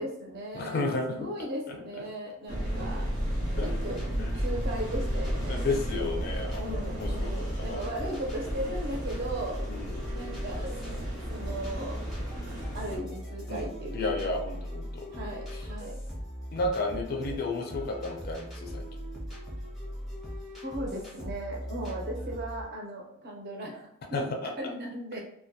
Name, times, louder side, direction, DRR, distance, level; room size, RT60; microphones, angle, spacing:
voice 1, 0.0-3.1 3.6-4.0 4.4-5.6 5.9-6.3 6.5-9.6 10.1-11.0 11.3-12.0 12.7-14.1 15.1-16.0 20.6-23.9 24.6-25.2, right 1 dB, 45° right, -1 dB, 0.6 m, -37 dB
voice 2, 0.5-1.3 1.7-1.8 3.6-3.7 4.2-4.3 5.5-7.8 9.7-10.0 13.5-13.7 13.9-15.1 15.5-15.6 16.5-18.9 24.1-24.5, left 2 dB, 45° left, 2 dB, 0.4 m, -32 dB
sound 1, 2.5-13.0, equal, 85° right, 0.8 m, -33 dB
sound 2, 3.5-22.6, equal, ahead, 0.6 m, -39 dB
2.2 x 2.1 x 2.7 m, 0.71 s
head